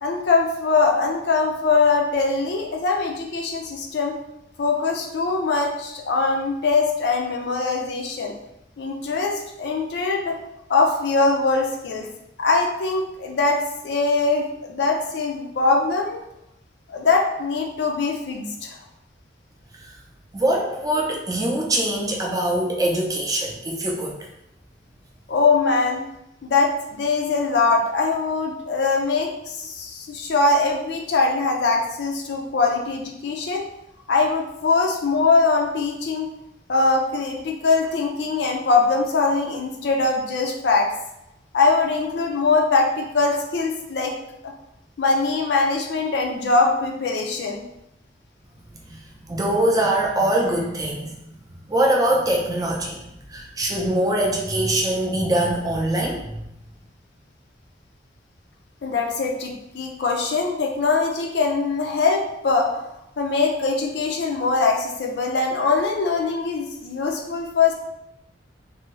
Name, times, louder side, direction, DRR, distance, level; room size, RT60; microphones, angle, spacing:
voice 1, 0.0-4.2 4.6-8.3 8.8-10.4 10.7-12.1 12.4-16.2 16.9-18.8 25.3-26.0 26.4-33.6 34.1-36.3 36.7-40.9 41.5-44.1 44.4-44.5 45.0-47.6 58.8-62.8 63.2-67.7, left 4 dB, 60° left, 1 dB, 0.4 m, -22 dB
voice 2, 20.3-24.2 48.7-51.4 51.7-56.4, right 1 dB, 20° right, -1 dB, 0.5 m, -23 dB
2.7 x 2.6 x 3.0 m, 0.86 s
head